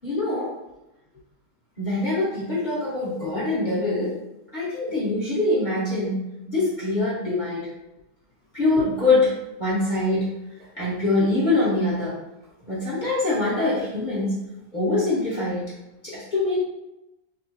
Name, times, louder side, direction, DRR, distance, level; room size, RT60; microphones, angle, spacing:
voice 1, 0.0-0.5 1.8-4.1 4.5-6.1 6.5-7.6 8.5-9.3 9.6-10.2 10.8-12.1 12.7-14.3 14.7-15.6 16.0-16.6, left 2 dB, 30° left, -9 dB, 1.0 m, -23 dB
3.4 x 2.1 x 4.0 m, 0.93 s
omnidirectional pair, 1.9 m